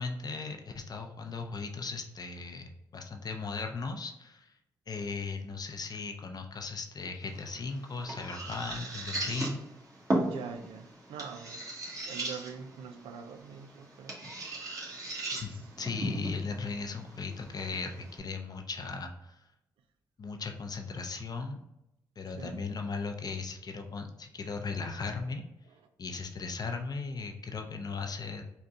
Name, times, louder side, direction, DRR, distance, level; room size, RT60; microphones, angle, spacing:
voice 1, 0.0-4.5 4.9-9.6 15.4-19.4 20.2-21.6 22.2-25.4 26.0-28.4, left 4 dB, 45° left, 4 dB, 0.5 m, -37 dB
sound 1, 7.2-18.2, right 1 dB, 40° right, 1.4 m, -38 dB
voice 2, 10.2-14.2 15.3-15.7 22.3-22.6 25.7-25.8, right 6 dB, 80° right, 8 dB, 0.4 m, -45 dB
3.9 x 2.2 x 3.6 m, 0.88 s
supercardioid pair, 50°, 9 cm